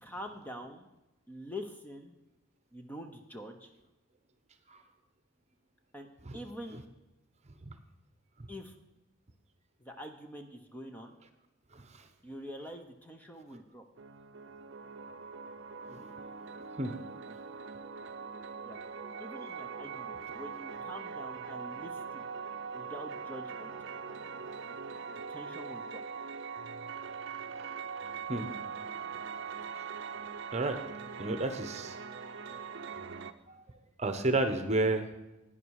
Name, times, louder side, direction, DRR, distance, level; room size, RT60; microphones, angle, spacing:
voice 1, 0.0-0.9 1.3-2.1 2.7-3.7 5.9-6.1 6.3-6.8 8.5-8.7 9.8-11.2 12.2-13.8 18.6-18.8 19.2-22.2 22.7-23.7 25.1-26.0, equal, 10° left, 5 dB, 0.8 m, -45 dB
sound 1, 14.0-33.3, right 5 dB, 55° right, 0.6 m, -42 dB
voice 2, 31.2-32.0 33.5-33.6 34.0-35.1, right 2 dB, 30° right, 8 dB, 1.0 m, -31 dB
11.0 x 9.9 x 4.8 m, 0.99 s
head